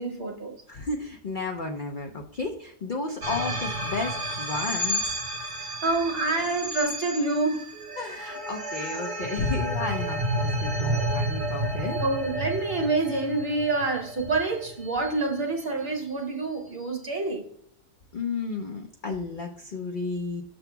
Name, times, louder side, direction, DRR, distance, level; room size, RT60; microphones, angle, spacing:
voice 1, 0.0-0.5 5.8-7.7 10.7-11.1 12.0-17.4, right 3 dB, 40° right, 1.2 m, -27 dB
voice 2, 0.7-5.1 8.0-12.0 18.1-20.4, left 3 dB, 55° left, 0.5 m, -32 dB
sound 1, 3.2-15.6, right 1 dB, 65° right, 1.7 m, -31 dB
6.9 x 4.0 x 4.5 m
omnidirectional pair, 1.7 m